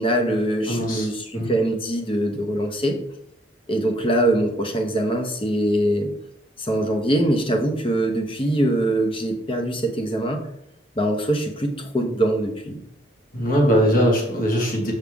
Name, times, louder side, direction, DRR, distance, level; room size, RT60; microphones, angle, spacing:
voice 1, 0.0-3.0 3.7-6.1 6.6-10.4 11.0-12.8, right 1 dB, 25° left, 4 dB, 1.0 m, -23 dB
voice 2, 0.7-1.1 1.3-1.5 13.3-14.9, equal, 45° left, -2 dB, 1.9 m, -20 dB
7.0 x 5.8 x 3.6 m, 0.74 s
head